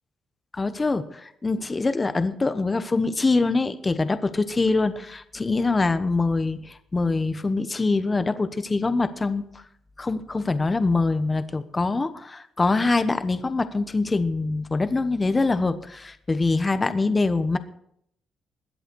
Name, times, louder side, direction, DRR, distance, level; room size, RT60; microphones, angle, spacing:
voice 1, 0.5-9.4 10.0-17.6, left 3 dB, 25° left, 11 dB, 1.1 m, -24 dB
21.5 x 7.9 x 4.7 m, 0.71 s
cardioid pair, 90°, 0 cm